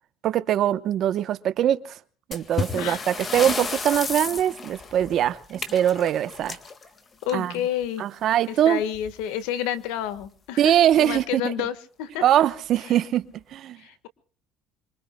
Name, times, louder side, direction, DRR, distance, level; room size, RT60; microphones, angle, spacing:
voice 1, 0.2-2.0 2.3-6.6 7.3-7.5 8.0-8.8 10.6-11.5 12.2-13.8, right 11 dB, 50° right, 0.9 m, -22 dB
sound 1, 2.3-7.7 8.9-9.1 9.4-9.5 10.2-10.3 10.9-11.2, left 4 dB, 25° left, 1.8 m, -32 dB
voice 2, 7.2-8.0 8.5-12.2 13.8-14.1, left 10 dB, 90° left, 1.5 m, -30 dB
26.5 x 23.5 x 2.3 m
cardioid pair, 135°, 0 cm